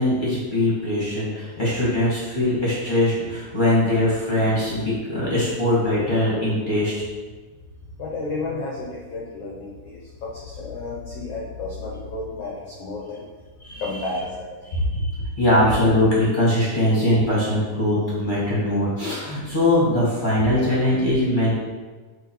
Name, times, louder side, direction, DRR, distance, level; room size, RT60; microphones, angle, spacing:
voice 1, 0.0-7.0 13.6-14.0 14.7-21.5, left 1 dB, 25° left, -7 dB, 1.0 m, -21 dB
voice 2, 8.0-13.2 13.8-14.6 20.6-20.7, left 3 dB, 70° left, -3 dB, 1.5 m, -32 dB
8.1 x 3.9 x 4.5 m, 1.4 s
omnidirectional pair, 3.9 m